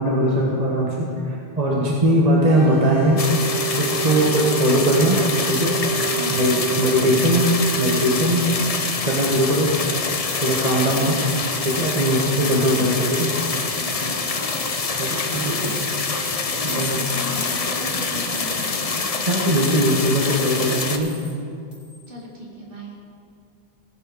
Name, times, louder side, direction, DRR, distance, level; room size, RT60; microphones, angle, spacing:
voice 1, 0.0-3.2 3.8-5.7 6.3-7.5 7.8-8.5 9.0-9.7 10.3-11.2 11.6-13.3 15.0-15.7 16.6-17.0 19.3-21.1, equal, 40° right, -4 dB, 1.6 m, -20 dB
sound 1, 2.5-8.2, right 8 dB, 80° right, 4.1 m, -29 dB
sound 2, 3.2-21.0, left 4 dB, 40° left, 0.8 m, -25 dB
sound 3, 5.8-5.9 6.4-6.5 6.8-7.1 7.5-7.6 8.0-8.3 8.6-8.9 9.3-9.7 10.1-10.4 10.8-11.1 11.6-12.0 12.4-12.8 13.4-14.0 14.3-15.0 15.3-16.1 16.7-18.8 19.5-21.3 21.7-22.1, left 1 dB, 80° left, 2.8 m, -42 dB
voice 2, 6.1-6.4 10.7-11.1 12.4-12.9 13.8-14.4 16.6-19.3 22.1-23.0, right 1 dB, 60° right, -4 dB, 2.6 m, -36 dB
17.5 x 7.9 x 5.1 m, 2.4 s
omnidirectional pair, 1.0 m